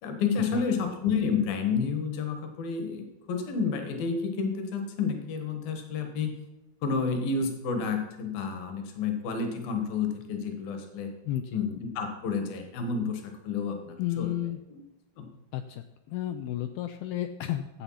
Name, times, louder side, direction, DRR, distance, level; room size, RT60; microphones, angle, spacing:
voice 1, 0.0-6.4 6.8-11.1 11.5-14.3 15.2-15.3, left 5 dB, 65° left, 5 dB, 3.1 m, -30 dB
voice 2, 11.2-11.6 14.0-14.6 15.5-17.8, left 12 dB, 80° left, 7 dB, 2.2 m, -32 dB
14.0 x 8.0 x 5.7 m, 0.97 s
omnidirectional pair, 4.7 m